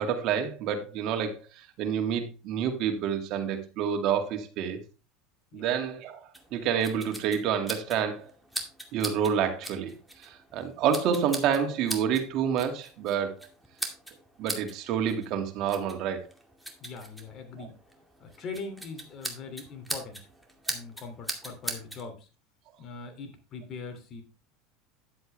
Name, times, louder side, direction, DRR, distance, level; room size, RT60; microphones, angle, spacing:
voice 1, 0.0-4.8 5.5-8.3 8.9-9.9 10.2-13.3 14.4-16.3 17.6-17.7, right 8 dB, 55° right, 5 dB, 2.3 m, -28 dB
sound 1, 6.3-22.1, right 1 dB, ahead, 2.3 m, -41 dB
voice 2, 16.8-17.7 18.2-20.2 20.7-22.2 22.8-24.2, left 4 dB, 45° left, 6 dB, 2.9 m, -41 dB
10.5 x 7.9 x 3.5 m, 0.32 s
supercardioid pair, 100°, 0 cm